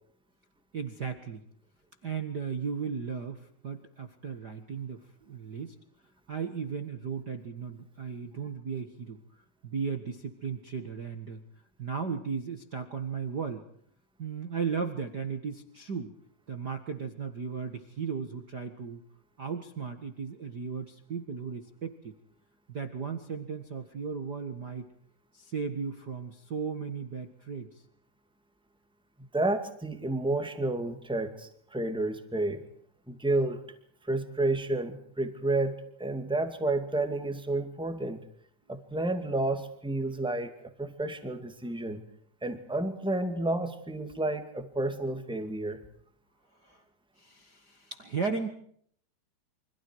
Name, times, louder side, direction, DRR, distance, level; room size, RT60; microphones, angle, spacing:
voice 1, 0.7-1.4 2.0-5.8 6.3-9.2 9.6-11.4 11.8-13.6 14.2-16.1 16.5-19.0 19.4-22.1 22.7-24.9 25.3-27.8 46.6-46.8 47.2-48.5, right 6 dB, 80° right, 7 dB, 0.9 m, -36 dB
voice 2, 29.3-32.6 33.1-33.6 34.0-38.2 38.7-42.0 42.4-45.8, right 2 dB, 5° right, 7 dB, 1.0 m, -31 dB
29.5 x 26.0 x 4.8 m, 0.63 s
omnidirectional pair, 4.8 m